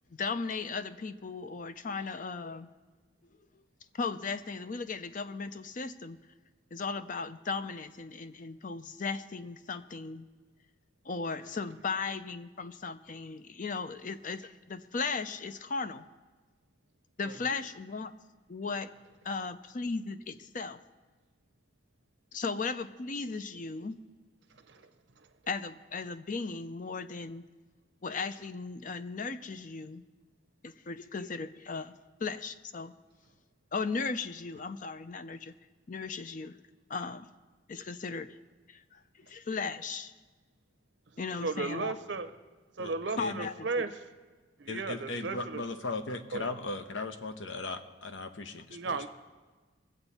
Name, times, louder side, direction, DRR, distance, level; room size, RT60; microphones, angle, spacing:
voice 1, 0.2-2.7 4.0-6.2 6.7-10.3 11.1-16.1 17.2-18.1 18.5-18.9 19.2-20.8 22.3-24.0 25.5-27.4 28.0-30.0 30.6-31.9 32.2-32.9 33.7-35.5 35.9-36.6 36.9-37.3 37.7-38.4 38.7-39.0 39.3-40.1 41.2-42.0 43.2-43.9, left 4 dB, 40° left, 12 dB, 0.5 m, -36 dB
voice 2, 41.4-42.3 42.8-43.9 44.6-45.6 46.3-46.5 48.7-49.1, right 3 dB, 65° right, 11 dB, 0.7 m, -34 dB
voice 3, 42.8-43.5 44.7-49.1, left 3 dB, 75° left, 9 dB, 0.9 m, -38 dB
21.5 x 7.9 x 4.2 m, 1.4 s
head